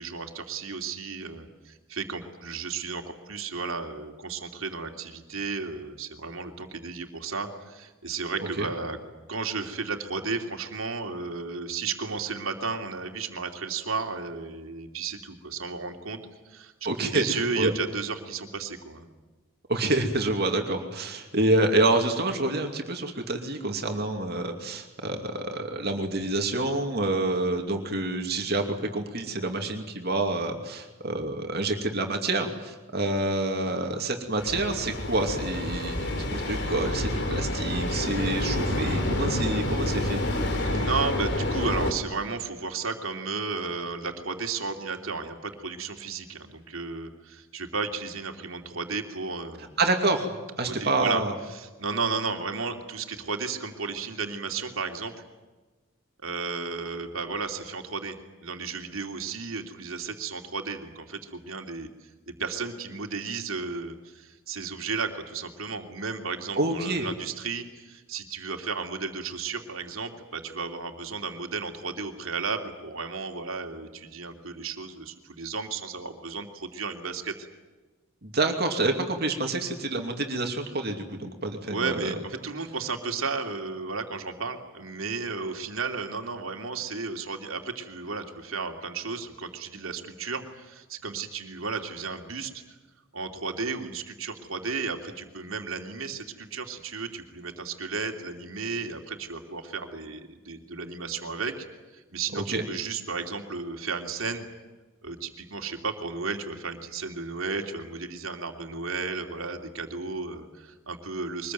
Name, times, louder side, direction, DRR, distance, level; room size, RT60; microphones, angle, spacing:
voice 1, 0.0-9.0 9.3-16.2 16.4-16.7 17.0-19.1 40.6-49.7 50.6-51.2 51.5-55.1 56.2-58.2 58.4-77.3 81.7-92.6 93.1-101.7 101.9-104.5 105.0-111.5, right 4 dB, 75° right, 4 dB, 2.9 m, -33 dB
voice 2, 16.8-17.7 19.7-40.2 49.8-51.3 66.5-67.1 78.2-82.1 102.5-102.6, right 2 dB, 45° right, 3 dB, 2.7 m, -27 dB
sound 1, 34.4-41.9, left 1 dB, 50° left, 3.2 m, -28 dB
24.0 x 21.0 x 9.3 m, 1.2 s
head